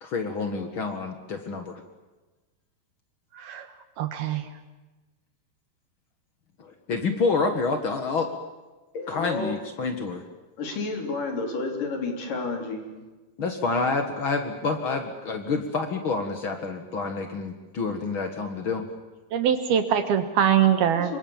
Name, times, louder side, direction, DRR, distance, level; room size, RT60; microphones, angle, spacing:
voice 1, 0.0-1.8 6.6-8.3 9.1-10.2 13.4-18.9, left 4 dB, 85° left, 6 dB, 1.1 m, -28 dB
voice 2, 4.0-4.4 19.3-21.1, right 9 dB, 65° right, 9 dB, 2.9 m, -22 dB
voice 3, 8.9-9.7 10.6-13.0 20.8-21.2, left 3 dB, 50° left, 3 dB, 4.8 m, -31 dB
28.0 x 24.5 x 7.3 m, 1.2 s
omnidirectional pair, 5.3 m